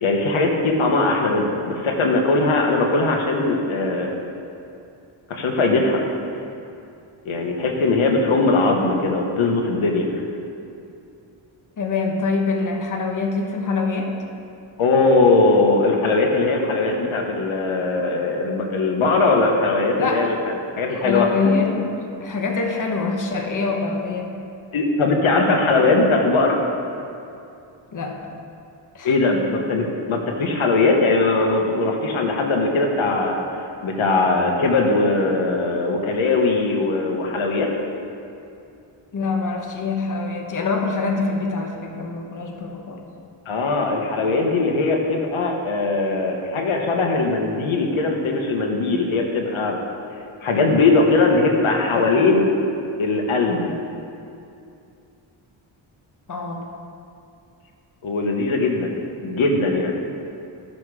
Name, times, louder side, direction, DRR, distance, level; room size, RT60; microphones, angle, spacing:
voice 1, 0.0-4.2 5.3-6.0 7.2-10.2 14.8-21.9 24.7-26.6 29.0-33.4 33.8-37.7 43.5-49.8 50.4-52.5 53.0-53.7 58.0-58.9 59.2-59.9, left 3 dB, 75° left, 2 dB, 1.3 m, -20 dB
voice 2, 11.8-14.2 20.0-20.3 20.9-21.8 22.2-24.4 27.9-28.2 28.9-29.4 39.1-43.0 56.3-56.6, left 4 dB, 40° left, 1 dB, 1.2 m, -25 dB
13.0 x 6.3 x 4.9 m, 2.6 s
cardioid pair, 95°, 49 cm